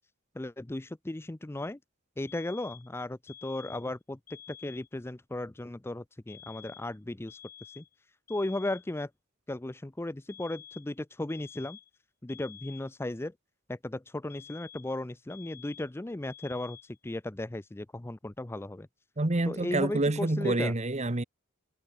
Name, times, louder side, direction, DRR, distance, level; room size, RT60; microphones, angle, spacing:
voice 1, 0.3-1.8 2.2-4.2 4.5-7.4 7.7-7.8 8.3-9.1 9.5-11.8 12.2-13.3 13.7-16.8 17.0-18.9 19.5-20.7, left 1 dB, 10° left, 0.5 m, -36 dB
sound 1, 2.3-2.9 3.3-3.9 4.3-4.9 6.3-7.0 7.3-7.9 8.3-8.9 10.3-10.9 11.3-12.0 12.3-13.0 14.3-15.0 15.3-16.0 16.3-17.0, left 10 dB, 45° left, 2.3 m, -51 dB
voice 2, 19.2-21.2, right 2 dB, 35° right, 1.2 m, -28 dB
head